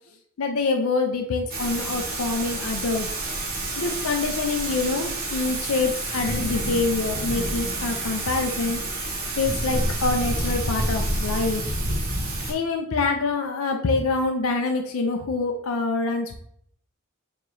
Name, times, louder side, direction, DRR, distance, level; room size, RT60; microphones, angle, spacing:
voice 1, 0.4-3.1 3.8-8.9 9.4-11.6 12.5-16.4, left 3 dB, 70° left, 4 dB, 0.5 m, -25 dB
Thunder / Rain, 1.5-12.5, right 1 dB, 45° right, 0.9 m, -28 dB
4.6 x 3.0 x 2.6 m, 0.66 s
head